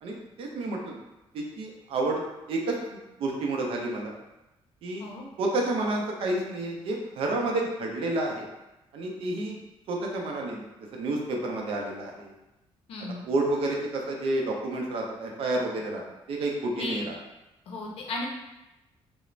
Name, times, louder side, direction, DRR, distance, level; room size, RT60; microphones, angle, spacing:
voice 1, 0.0-1.0 1.3-2.2 2.5-4.1 4.8-5.1 5.4-8.5 8.9-9.6 9.9-10.6 10.9-12.3 13.3-16.0 16.3-17.1, right 2 dB, 65° right, 0 dB, 0.5 m, -30 dB
voice 2, 12.9-13.2 16.8-17.0 17.7-18.3, left 2 dB, 65° left, -1 dB, 0.5 m, -35 dB
2.4 x 2.0 x 3.1 m, 0.98 s
cardioid pair, 155°, 10 cm